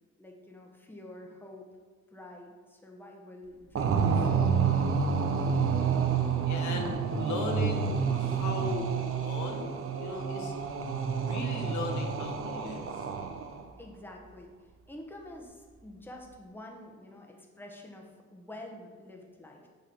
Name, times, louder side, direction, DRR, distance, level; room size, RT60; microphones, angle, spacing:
voice 1, 0.2-1.7 2.1-4.1 13.8-19.7, left 1 dB, 5° left, 0 dB, 1.2 m, -48 dB
sound 1, 3.8-13.6, right 6 dB, 50° right, 0.7 m, -29 dB
voice 2, 6.5-10.5 11.0-13.0, left 3 dB, 70° left, 3 dB, 1.1 m, -38 dB
6.9 x 4.0 x 5.6 m, 1.4 s
cardioid pair, 90°, 30 cm